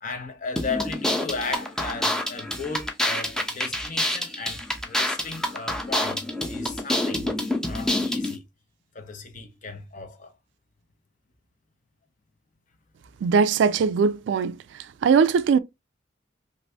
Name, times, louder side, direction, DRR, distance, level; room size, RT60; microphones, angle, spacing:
voice 1, 0.0-7.3 7.6-8.4 8.9-10.3, left 4 dB, 45° left, 0.6 m, -35 dB
sound 1, 0.6-8.4, left 1 dB, 5° left, 0.5 m, -27 dB
voice 2, 13.2-14.6 15.0-15.6, right 5 dB, 70° right, 0.3 m, -20 dB
2.6 x 2.6 x 3.2 m
head